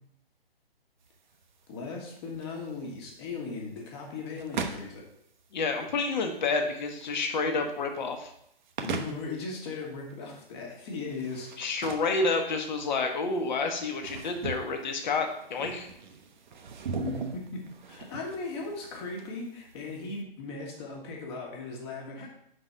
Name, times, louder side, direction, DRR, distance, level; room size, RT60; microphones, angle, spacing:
sound 1, 1.0-20.2, right 5 dB, 50° right, 0.7 m, -41 dB
voice 1, 1.7-5.0 8.8-11.5 17.0-17.6 17.9-22.3, left 3 dB, 25° left, -1 dB, 1.2 m, -37 dB
voice 2, 5.5-8.3 11.6-15.9, left 3 dB, 50° left, 5 dB, 1.0 m, -29 dB
5.2 x 3.9 x 5.5 m, 0.72 s
hypercardioid pair, 145°, 30 cm